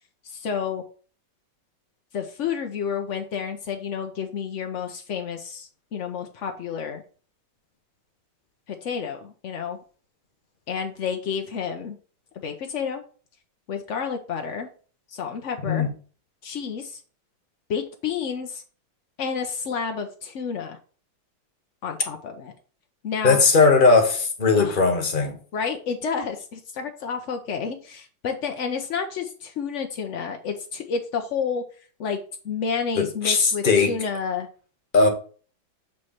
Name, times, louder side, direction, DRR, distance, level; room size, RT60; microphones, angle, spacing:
voice 1, 0.2-0.8 2.1-7.0 8.7-9.8 10.7-12.0 12.3-13.0 13.7-14.7 15.1-15.9 16.4-17.0 17.7-18.6 19.2-20.8 21.8-22.5 23.0-23.4 24.6-24.8 25.5-31.6 32.0-32.2 32.4-34.5, left 6 dB, 80° left, 0.6 m, -30 dB
voice 2, 23.2-25.4 33.0-33.9 34.9-35.1, left 4 dB, 30° left, 1.1 m, -18 dB
7.5 x 3.2 x 5.7 m
omnidirectional pair, 2.2 m